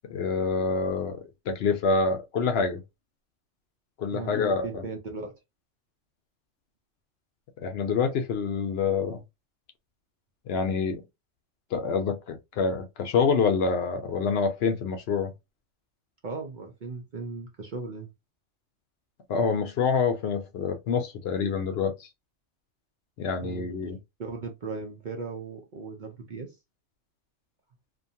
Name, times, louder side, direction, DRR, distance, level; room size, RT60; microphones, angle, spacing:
voice 1, 0.1-2.8 4.0-4.8 7.6-9.2 10.5-11.0 11.7-15.3 19.3-22.1 23.2-24.0, left 5 dB, 65° left, 0.8 m, -26 dB
voice 2, 4.1-5.3 16.2-18.1 23.4-23.7 24.2-26.6, right 4 dB, 55° right, 0.6 m, -37 dB
2.5 x 2.2 x 2.6 m
omnidirectional pair, 1.2 m